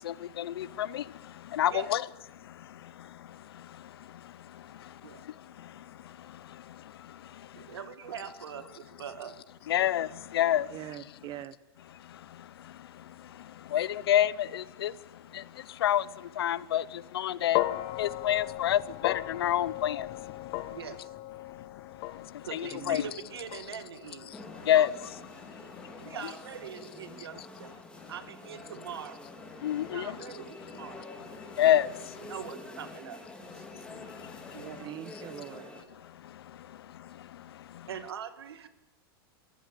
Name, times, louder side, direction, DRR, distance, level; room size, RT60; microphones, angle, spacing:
voice 1, 1.6-2.0 9.7-10.1 10.3-10.6 13.7-14.9 15.8-16.0 16.4-16.8 17.1-17.6 18.0-20.0 22.5-23.0 24.7-24.9 29.6-30.0 31.6-31.9, left 11 dB, 80° left, 0.8 m, -26 dB
voice 2, 7.6-9.4 20.7-21.1 22.4-24.3 25.9-27.8 28.1-29.2 29.9-31.4 32.2-33.2 33.5-33.6 34.5-34.8 37.9-38.7, right 8 dB, 90° right, 2.0 m, -42 dB
voice 3, 10.7-11.5 22.7-23.1 34.8-35.7, right 13 dB, 35° right, 1.3 m, -42 dB
sound 1, 17.5-25.9, left 16 dB, 50° left, 1.1 m, -37 dB
sound 2, 24.3-35.8, left 2 dB, 10° left, 3.3 m, -47 dB
24.0 x 14.0 x 8.7 m
hypercardioid pair, 130°, 13 cm